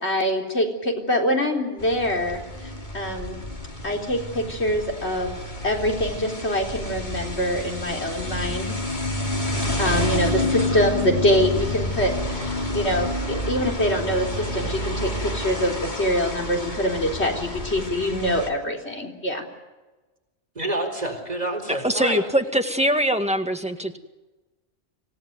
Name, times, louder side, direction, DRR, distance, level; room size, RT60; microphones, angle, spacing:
voice 1, 0.0-3.4 3.8-5.3 5.6-8.7 9.8-19.4, equal, 65° left, 2 dB, 4.2 m, -24 dB
sound 1, 1.8-18.5, left 1 dB, 40° left, 3.0 m, -29 dB
voice 2, 20.5-22.2, right 1 dB, 35° right, 3 dB, 4.3 m, -28 dB
voice 3, 21.7-24.0, equal, 5° right, 5 dB, 1.8 m, -23 dB
26.5 x 17.0 x 9.5 m, 1.2 s
omnidirectional pair, 1.2 m